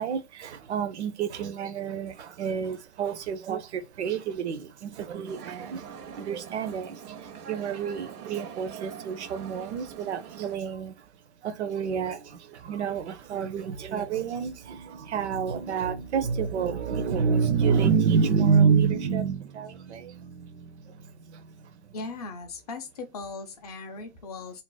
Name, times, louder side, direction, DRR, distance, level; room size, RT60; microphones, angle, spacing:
voice 1, 0.0-11.1 11.4-21.9, right 6 dB, 50° right, 0.4 m, -28 dB
sound 1, 5.3-10.6, right 7 dB, 85° right, 0.8 m, -43 dB
voice 2, 21.9-24.6, left 4 dB, 30° left, 0.4 m, -38 dB
2.5 x 2.1 x 3.7 m
hypercardioid pair, 140°, 45 cm